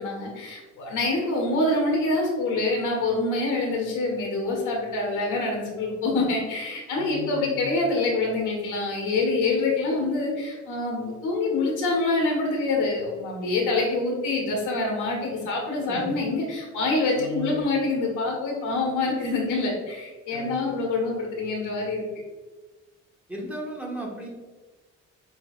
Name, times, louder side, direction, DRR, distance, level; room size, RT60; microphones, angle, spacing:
voice 1, 0.0-22.0, left 2 dB, 90° left, -1 dB, 1.3 m, -26 dB
voice 2, 6.9-7.6 15.9-16.3 17.1-17.7 20.3-20.5 23.3-24.3, equal, 5° right, -4 dB, 1.5 m, -36 dB
5.9 x 3.2 x 2.4 m, 1.3 s
cardioid pair, 90°, 30 cm